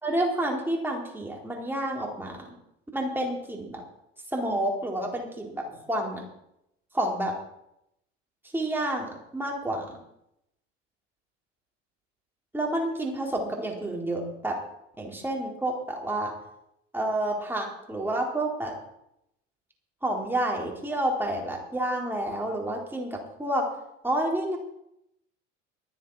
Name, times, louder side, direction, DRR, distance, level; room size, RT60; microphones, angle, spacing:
voice 1, 0.0-2.6 2.9-3.8 4.3-6.3 6.9-7.3 8.5-10.0 12.5-14.6 15.0-16.3 16.9-18.7 20.0-23.7 24.0-24.6, right 1 dB, 5° right, -1 dB, 3.6 m, -29 dB
22.5 x 7.6 x 4.3 m, 0.80 s
figure-of-eight pair, 65°, 38 cm